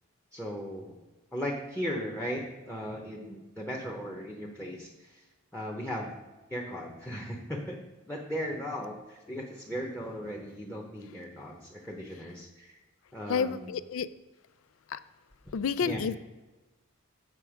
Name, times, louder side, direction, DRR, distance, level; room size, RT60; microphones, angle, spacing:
voice 1, 0.3-1.0 1.3-5.2 5.5-6.2 6.5-12.7 13.1-13.7 15.8-16.0, equal, 10° left, 0 dB, 0.9 m, -37 dB
voice 2, 13.3-14.1 14.9-15.0 15.5-16.2, left 6 dB, 70° left, 16 dB, 0.4 m, -29 dB
7.6 x 6.0 x 4.9 m, 1.2 s
head